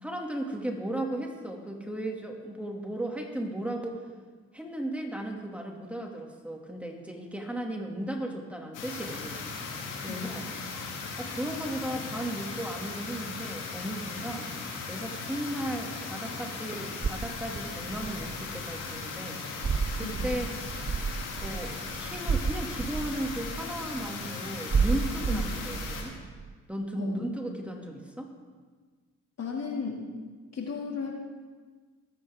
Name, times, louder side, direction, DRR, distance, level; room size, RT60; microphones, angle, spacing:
voice 1, 0.0-4.0 4.5-9.4 10.0-10.5 11.2-14.5 14.9-19.4 19.9-20.8 21.4-26.2 26.7-28.3, right 1 dB, 5° right, 1 dB, 2.3 m, -35 dB
sound 1, 8.7-26.0, left 4 dB, 80° left, 2.5 m, -38 dB
voice 2, 10.1-10.4 20.0-20.3 25.3-25.4 27.0-27.2 29.4-30.0 30.5-31.2, left 5 dB, 55° left, -1 dB, 2.4 m, -35 dB
sound 2, 17.0-18.7 19.6-24.1 24.7-26.5, right 5 dB, 20° right, 0.4 m, -32 dB
20.5 x 8.7 x 3.6 m, 1.5 s
supercardioid pair, 55°, 31 cm